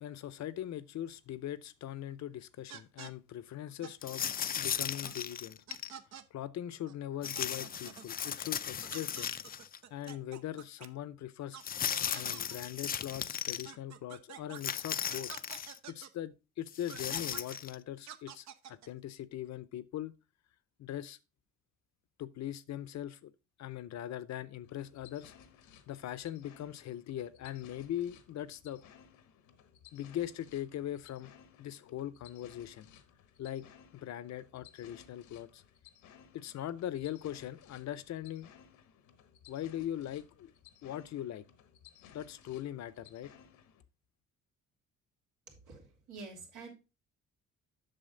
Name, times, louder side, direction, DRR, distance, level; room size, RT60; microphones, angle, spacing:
voice 1, 0.0-5.6 6.3-9.3 9.9-11.6 12.1-15.3 15.9-20.1 20.8-21.2 22.2-23.3 23.6-25.3 25.9-28.8 29.9-31.3 31.6-32.9 33.4-33.7 33.9-35.6 36.3-38.5 39.5-40.5 40.8-41.4 42.0-43.3, left 11 dB, 65° left, 0.7 m, -41 dB
sound 1, 2.7-3.1 3.8-3.9 4.2-4.3 5.0-5.1 5.7-6.2 6.9-7.0 7.2-8.1 8.8-10.9 11.5-11.6 11.9-12.6 13.6-14.6 15.1-16.1 16.9-17.6 18.1-18.9, right 9 dB, 60° right, 0.8 m, -48 dB
sound 2, 4.0-5.9 7.2-9.8 10.1-10.2 11.6-13.7 14.6-15.8 16.7-17.7, left 8 dB, 30° left, 0.4 m, -37 dB
sound 3, 24.6-43.8, left 9 dB, 90° left, 1.1 m, -59 dB
voice 2, 45.5-46.7, right 3 dB, 85° right, 3.2 m, -48 dB
7.8 x 6.2 x 3.8 m
cardioid pair, 90°, 30 cm